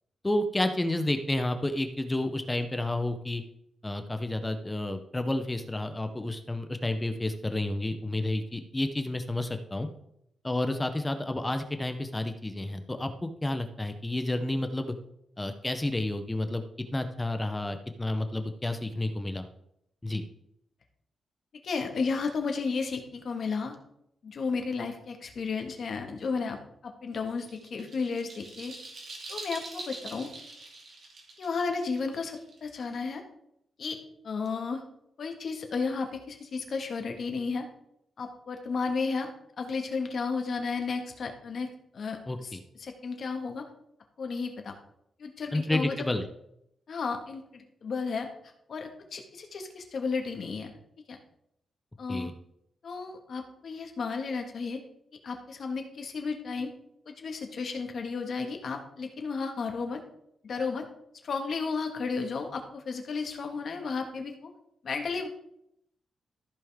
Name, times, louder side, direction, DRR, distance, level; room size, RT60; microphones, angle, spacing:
voice 1, 0.2-3.4 3.8-9.9 10.4-14.9 15.4-16.6 16.9-19.5 20.0-20.2 42.3-42.6 45.5-46.2 52.1-52.3, left 1 dB, 15° left, 8 dB, 0.7 m, -30 dB
voice 2, 21.6-23.8 24.2-28.7 29.3-30.3 31.4-33.2 33.8-34.0 34.2-34.8 35.2-37.7 38.2-39.3 39.6-43.7 44.2-44.7 45.2-46.0 46.9-48.3 48.7-50.7 51.1-51.2 52.0-52.3 52.8-54.8 55.2-56.7 57.0-60.0 60.4-60.9 61.2-64.5 64.8-65.3, left 4 dB, 55° left, 4 dB, 1.7 m, -33 dB
sound 1, 27.1-32.9, right 2 dB, 55° right, 2.4 m, -44 dB
14.0 x 5.3 x 3.6 m, 0.76 s
cardioid pair, 115°, 0 cm